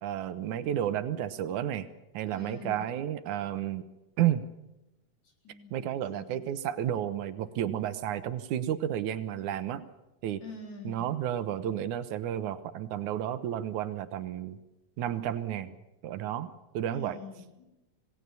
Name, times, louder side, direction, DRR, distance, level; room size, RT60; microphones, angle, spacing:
voice 1, 0.0-1.9 2.1-3.9 4.2-4.5 5.7-9.8 10.2-10.4 10.8-14.6 15.0-15.7 16.0-16.5 16.7-17.2, right 11 dB, 80° right, 12 dB, 2.5 m, -31 dB
voice 2, 2.3-2.9 5.4-5.8 6.1-6.5 10.4-11.1 16.9-17.7, left 3 dB, 65° left, 1 dB, 5.5 m, -45 dB
27.0 x 18.5 x 6.9 m, 0.94 s
omnidirectional pair, 3.5 m